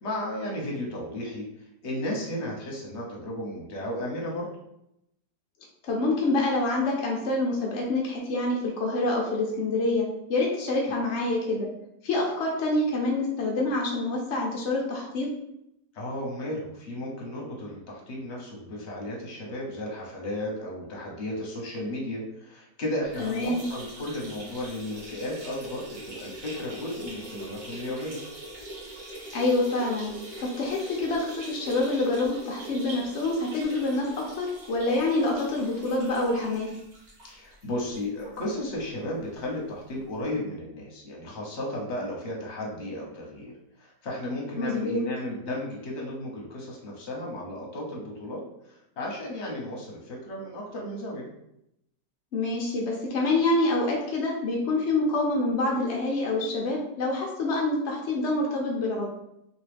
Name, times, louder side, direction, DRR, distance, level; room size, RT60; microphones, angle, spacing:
voice 1, 0.0-1.4 1.8-4.5 10.8-10.9 15.9-28.2 37.2-51.3, left 1 dB, 50° left, -2 dB, 1.0 m, -34 dB
voice 2, 5.8-11.7 12.0-15.3 23.2-23.6 29.3-30.1 30.4-36.7 44.6-45.0 52.3-59.1, left 2 dB, 70° left, -1 dB, 0.6 m, -26 dB
sound 1, 23.0-38.4 38.8-38.9 39.2-39.3 40.3-40.4, right 1 dB, 45° right, 1.2 m, -43 dB
3.1 x 3.0 x 3.3 m, 0.81 s
omnidirectional pair, 1.8 m